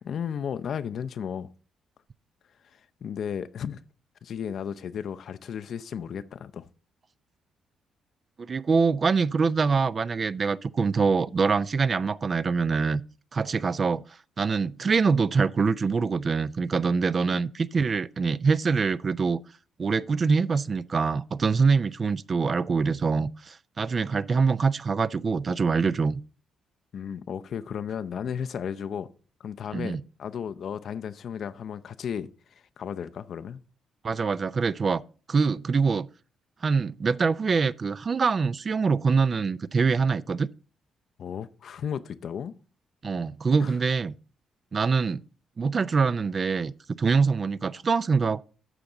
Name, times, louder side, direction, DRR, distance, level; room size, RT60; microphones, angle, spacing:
voice 1, 0.0-1.5 3.0-3.8 4.2-6.6 26.9-29.1 29.4-33.6 41.2-42.5 43.6-43.7, left 8 dB, 55° left, 0.5 m, -34 dB
voice 2, 8.4-13.0 13.3-14.0 14.4-19.4 19.8-26.2 29.7-30.0 34.0-35.0 35.3-36.1 36.6-40.5 43.0-44.1 44.7-45.2 45.6-48.4, right 5 dB, 45° right, 0.4 m, -24 dB
11.0 x 6.8 x 3.8 m
hypercardioid pair, 45°, 0 cm